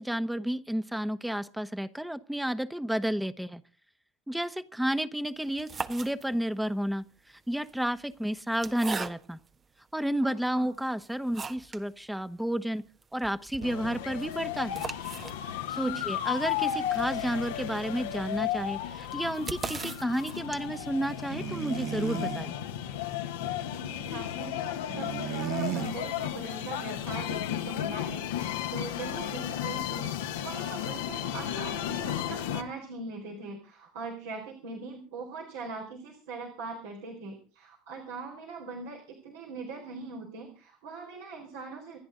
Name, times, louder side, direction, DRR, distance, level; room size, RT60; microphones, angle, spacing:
voice 1, 0.0-3.6 4.3-7.0 7.5-9.4 9.9-12.8 13.1-14.8 15.7-22.5, right 1 dB, 5° right, 11 dB, 1.2 m, -31 dB
sound 1, 5.4-6.6 7.5-9.6 10.2-10.3 10.7-11.9 12.2-12.3 12.6-12.7 13.0-20.9, right 5 dB, 35° right, 1.3 m, -41 dB
voice 2, 10.2-10.7 15.7-16.0 23.7-42.0, right 3 dB, 80° right, 0 dB, 4.1 m, -41 dB
sound 2, 13.6-32.6, left 11 dB, 85° left, 1.5 m, -34 dB
sound 3, 21.3-22.5 24.9-26.0, right 13 dB, 60° right, 1.1 m, -34 dB
28.0 x 10.0 x 3.9 m, 0.38 s
hypercardioid pair, 70°, 0 cm